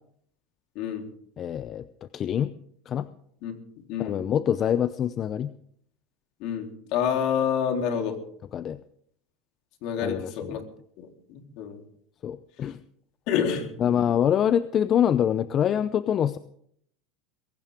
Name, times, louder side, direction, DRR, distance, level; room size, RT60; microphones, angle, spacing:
voice 1, 0.8-1.1 3.4-3.5 3.9-4.2 6.4-8.2 9.8-10.6 11.0-11.8 13.3-14.1, left 8 dB, 60° left, 4 dB, 3.8 m, -28 dB
voice 2, 1.4-2.5 2.9-3.1 4.0-5.5 8.5-8.8 10.0-10.6 12.2-12.8 13.8-16.4, left 9 dB, 35° left, 14 dB, 0.7 m, -25 dB
22.0 x 17.0 x 3.7 m, 0.64 s
supercardioid pair, 125°, 0 cm